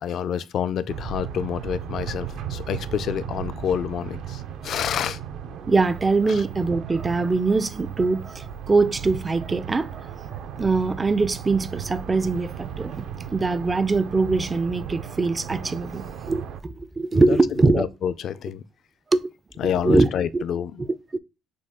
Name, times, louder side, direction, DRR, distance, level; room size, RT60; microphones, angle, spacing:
voice 1, 0.0-5.2 6.3-6.4 17.1-18.6 19.6-20.8, left 9 dB, 50° left, 0.4 m, -28 dB
sound 1, 0.9-16.6, right 8 dB, 70° right, 0.6 m, -35 dB
voice 2, 5.7-9.9 10.6-13.1 13.3-17.9 19.1-19.2 19.8-20.1 20.3-20.4 21.1-21.2, right 3 dB, 20° right, 0.4 m, -22 dB
6.4 x 2.3 x 3.5 m
cardioid pair, 145°, 0 cm